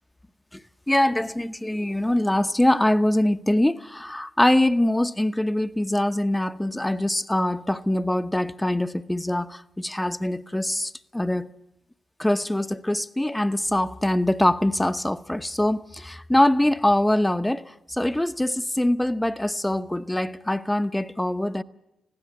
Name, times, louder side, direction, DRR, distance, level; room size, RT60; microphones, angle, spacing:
voice 1, 0.9-11.5 12.2-21.6, left 1 dB, 10° left, 0.9 m, -23 dB
20.5 x 15.5 x 8.6 m
hypercardioid pair, 45°, 0 cm